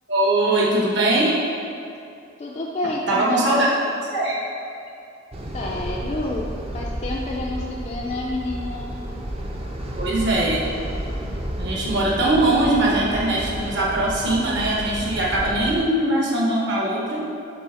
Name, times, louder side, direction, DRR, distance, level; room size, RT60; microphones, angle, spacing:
voice 1, 0.1-1.4 3.1-3.7 4.1-4.4 10.0-10.7 11.6-17.3, right 1 dB, 60° right, -4 dB, 1.2 m, -21 dB
voice 2, 2.4-4.0 5.5-6.5 6.7-8.9, left 2 dB, 35° left, -2 dB, 0.4 m, -29 dB
sound 1, 5.3-15.8, equal, 30° right, 0.6 m, -31 dB
6.8 x 3.3 x 4.9 m, 2.5 s
head